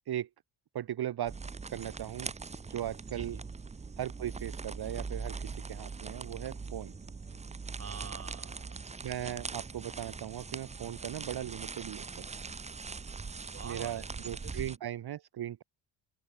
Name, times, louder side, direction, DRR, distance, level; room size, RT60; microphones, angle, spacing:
voice 1, 0.7-1.4 1.7-2.3 2.7-3.4 4.0-6.9 9.0-12.5 13.6-15.6, right 11 dB, 55° right, 1.2 m, -38 dB
sound 1, 1.3-14.8, right 4 dB, 15° right, 0.6 m, -41 dB
voice 2, 3.1-3.4 7.8-8.8 13.5-14.8, right 6 dB, 30° right, 1.9 m, -47 dB
sound 2, 3.8-12.6, left 15 dB, 85° left, 5.7 m, -66 dB
open air
cardioid pair, 95°, 45 cm